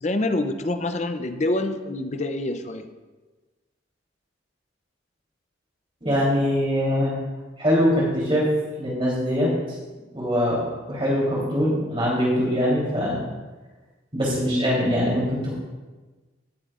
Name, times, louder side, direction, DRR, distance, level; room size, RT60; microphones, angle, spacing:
voice 1, 0.0-2.9, left 2 dB, 35° left, 8 dB, 0.5 m, -26 dB
voice 2, 6.0-7.2 7.6-8.5 8.8-9.5 10.1-13.2 14.1-15.5, equal, 25° right, -5 dB, 3.4 m, -22 dB
17.5 x 7.5 x 2.5 m, 1.3 s
head